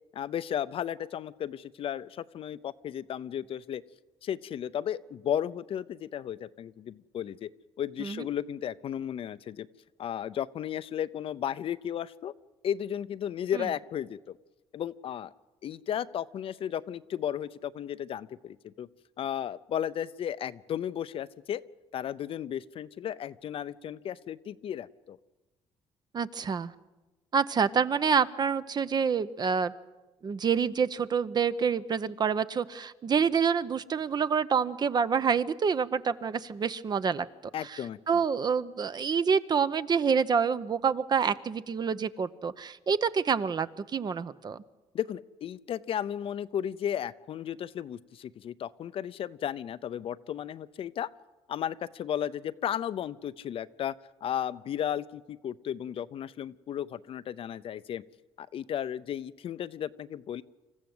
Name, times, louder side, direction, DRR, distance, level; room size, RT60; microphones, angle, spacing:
voice 1, 0.1-3.8 4.2-7.5 7.8-9.7 10.0-12.3 12.6-14.4 14.7-15.3 15.6-18.9 19.2-21.6 21.9-25.2 37.5-38.2 44.9-51.1 51.5-53.9 54.2-58.0 58.4-60.4, left 10 dB, 55° left, 15 dB, 0.6 m, -34 dB
voice 2, 26.1-26.7 27.3-29.7 30.2-37.3 37.7-37.8 38.1-44.6, right 6 dB, 40° right, 14 dB, 0.8 m, -27 dB
26.5 x 14.5 x 7.9 m, 1.1 s
cardioid pair, 115°, 11 cm